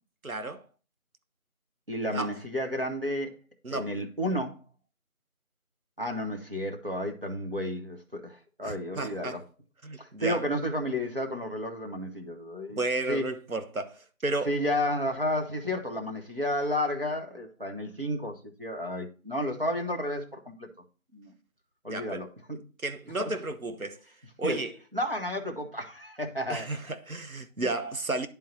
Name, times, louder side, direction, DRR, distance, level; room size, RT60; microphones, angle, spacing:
voice 1, 0.2-0.6 2.1-2.3 3.6-3.9 8.6-9.4 9.8-10.4 12.7-14.5 21.9-22.3 22.8-24.0 24.4-24.8 26.5-28.3, right 2 dB, 90° right, 1.2 m, -33 dB
voice 2, 1.9-3.4 3.7-4.6 6.0-9.4 10.0-12.8 13.1-13.2 14.5-20.7 21.1-21.3 21.8-22.6 23.2-23.3 24.4-24.6 24.9-26.7, left 1 dB, 45° right, 1.2 m, -32 dB
10.5 x 3.7 x 4.2 m
figure-of-eight pair, 180°, 41 cm